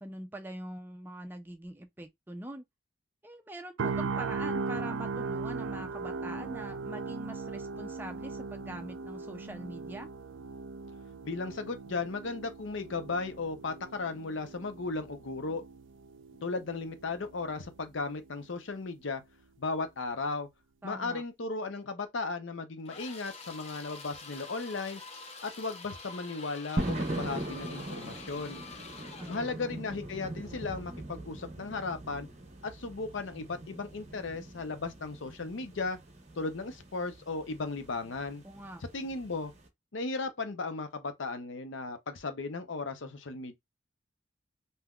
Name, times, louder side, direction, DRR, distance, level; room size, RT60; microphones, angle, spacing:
voice 1, 0.0-2.6 3.2-10.1 20.8-21.2 29.2-29.8 38.4-38.8, right 1 dB, 10° right, 0.4 m, -43 dB
sound 1, 3.8-17.8 18.1-18.4, right 4 dB, 75° right, 0.4 m, -38 dB
voice 2, 11.2-15.6 16.4-19.2 19.6-20.5 20.8-25.0 25.4-28.6 29.3-32.3 32.6-36.0 36.4-38.4 38.9-39.5 39.9-43.5, left 3 dB, 75° left, 0.7 m, -36 dB
sound 2, 22.9-29.5, left 4 dB, 30° left, 0.7 m, -47 dB
sound 3, 26.8-39.7, right 1 dB, 35° right, 0.8 m, -41 dB
3.5 x 2.7 x 2.3 m
head